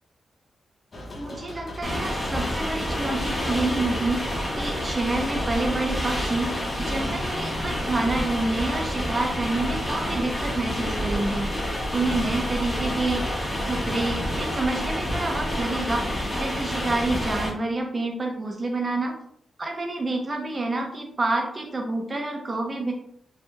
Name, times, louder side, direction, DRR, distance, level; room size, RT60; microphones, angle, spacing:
sound 1, 0.9-12.0, left 1 dB, 40° left, 0.6 m, -43 dB
voice 1, 1.1-11.5 11.9-19.1 19.6-22.9, right 2 dB, 35° right, 1 dB, 0.7 m, -28 dB
sound 2, 1.8-17.5, equal, 20° left, 1.1 m, -28 dB
3.3 x 2.8 x 2.2 m, 0.66 s
cardioid pair, 100°, 0 cm